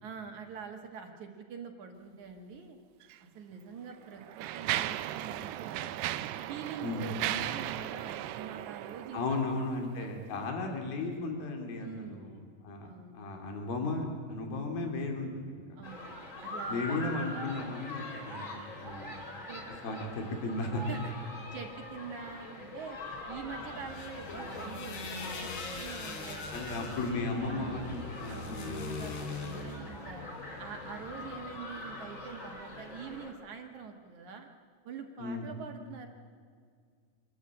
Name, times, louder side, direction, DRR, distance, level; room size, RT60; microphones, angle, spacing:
voice 1, 0.0-2.8 3.2-6.0 6.5-10.5 11.8-12.3 12.8-13.2 15.8-17.0 19.5-19.6 20.9-21.1 21.5-23.0 23.3-26.9 27.5-28.0 28.3-30.3 30.6-34.5 34.8-36.1, right 6 dB, 60° right, 4 dB, 2.3 m, -45 dB
Mechanisms, 3.0-3.2 3.9-9.7, right 13 dB, 80° right, 2.6 m, -36 dB
voice 2, 6.8-7.1 9.1-12.4 12.6-15.6 16.7-18.4 18.8-19.1 19.8-20.8 26.5-29.0 35.2-35.5, left 3 dB, 65° left, 3 dB, 4.4 m, -35 dB
sound 1, 15.8-33.3, left 1 dB, 20° left, 2.9 m, -43 dB
sound 2, 23.6-31.6, left 4 dB, 90° left, 4.7 m, -42 dB
26.0 x 13.5 x 8.7 m, 2.1 s
omnidirectional pair, 4.7 m